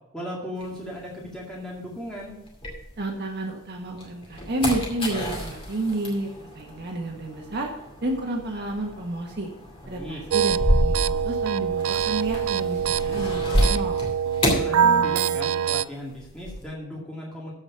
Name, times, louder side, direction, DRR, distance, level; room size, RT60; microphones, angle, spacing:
voice 1, 0.1-2.3 9.8-10.2 14.5-17.5, left 1 dB, 5° left, -5 dB, 2.1 m, -36 dB
sound 1, 0.6-3.4 3.8-15.6 15.8-16.7, equal, 25° left, 2.4 m, -30 dB
voice 2, 3.0-7.7 8.0-9.5 9.9-14.0, right 1 dB, 50° right, 1 dB, 1.5 m, -30 dB
sound 2, 10.3-15.8, right 8 dB, 70° right, 0.3 m, -24 dB
13.5 x 5.0 x 5.9 m, 0.90 s
head